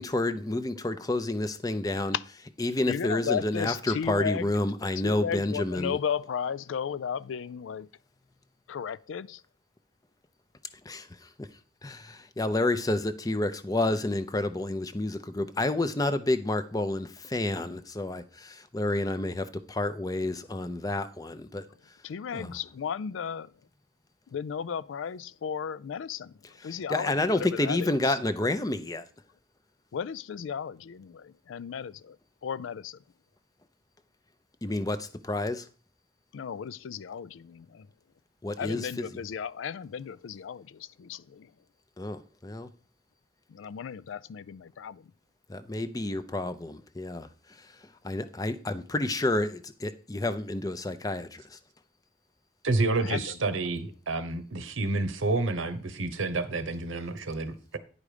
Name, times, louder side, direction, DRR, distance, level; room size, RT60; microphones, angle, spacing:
voice 1, 0.0-2.2 2.6-6.0 10.8-11.5 11.8-21.6 22.3-22.6 26.6-29.1 34.6-35.7 38.4-39.1 42.0-42.7 45.5-51.6, left 2 dB, 20° left, 0.5 m, -30 dB
voice 2, 2.9-4.5 5.0-7.9 8.7-9.4 22.0-23.5 24.3-26.3 26.6-28.2 29.9-32.2 32.4-33.0 36.3-37.9 38.6-41.5 43.5-45.1 53.0-53.4, left 7 dB, 80° left, 0.4 m, -35 dB
voice 3, 52.6-57.8, right 3 dB, 90° right, 1.0 m, -29 dB
9.6 x 5.0 x 4.9 m
head